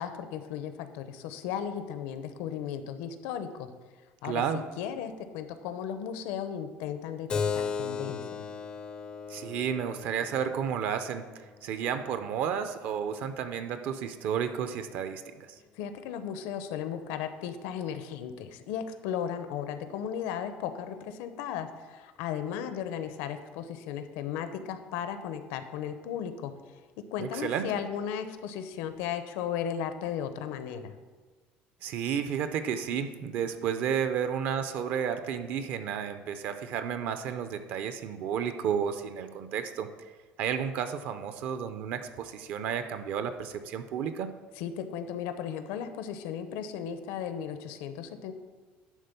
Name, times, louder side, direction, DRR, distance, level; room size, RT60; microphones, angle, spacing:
voice 1, 0.0-3.7 4.2-8.5 15.7-26.5 27.1-30.9 44.6-48.3, left 8 dB, 85° left, 9 dB, 0.8 m, -35 dB
voice 2, 4.2-4.6 9.3-15.6 27.2-27.7 31.8-39.9 40.4-44.3, right 8 dB, 50° right, 9 dB, 0.5 m, -32 dB
Keyboard (musical), 7.3-12.4, left 6 dB, 20° left, 0.4 m, -36 dB
11.0 x 3.8 x 6.8 m, 1.4 s
cardioid pair, 175°, 4 cm